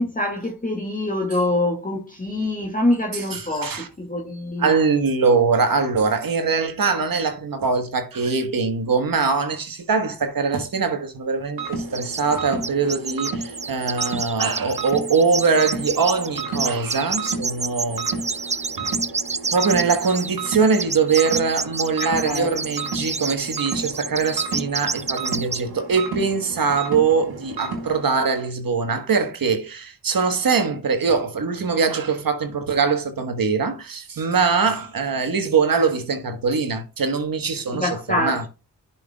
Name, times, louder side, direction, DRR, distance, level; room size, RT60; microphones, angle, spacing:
voice 1, 0.0-4.7 22.0-22.7 37.7-38.5, left 1 dB, 20° left, 2.1 m, -25 dB
voice 2, 3.3-3.9 4.6-18.1 18.8-18.9 19.5-37.9 38.2-38.5, right 5 dB, 65° right, 1.4 m, -22 dB
sound 1, 11.6-28.1, right 3 dB, 90° right, 1.8 m, -33 dB
sound 2, 11.9-12.4 12.6-25.6, right 4 dB, 20° right, 0.4 m, -29 dB
10.5 x 5.9 x 2.3 m
cardioid pair, 40°, 37 cm